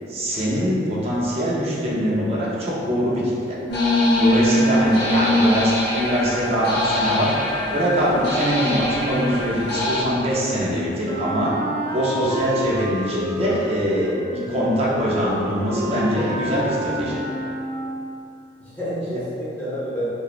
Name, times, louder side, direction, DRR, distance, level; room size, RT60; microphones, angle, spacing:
voice 1, 0.1-3.6 4.1-7.3 7.7-11.5 11.9-17.2, equal, 35° right, -7 dB, 0.5 m, -23 dB
sound 1, 3.7-10.0, left 1 dB, 60° left, 0.6 m, -22 dB
voice 2, 5.0-5.4 18.6-20.1, equal, 10° left, -12 dB, 0.8 m, -29 dB
Wind instrument woodwind instrument, 11.0-18.0, equal, 85° right, 0.6 m, -29 dB
2.9 x 2.0 x 2.4 m, 2.7 s
head